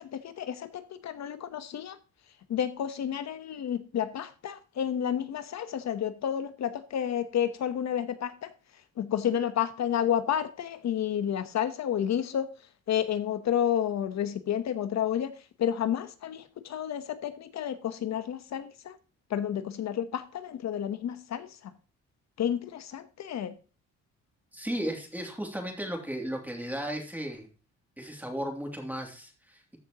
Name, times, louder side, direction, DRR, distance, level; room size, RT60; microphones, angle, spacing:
voice 1, 0.0-2.0 2.5-8.5 9.0-12.5 12.9-19.0 19.3-21.7 22.4-23.6, left 9 dB, 65° left, 1.1 m, -31 dB
voice 2, 24.5-27.5 28.0-29.8, equal, 5° right, 2.8 m, -35 dB
14.0 x 6.7 x 3.0 m
cardioid pair, 90°, 30 cm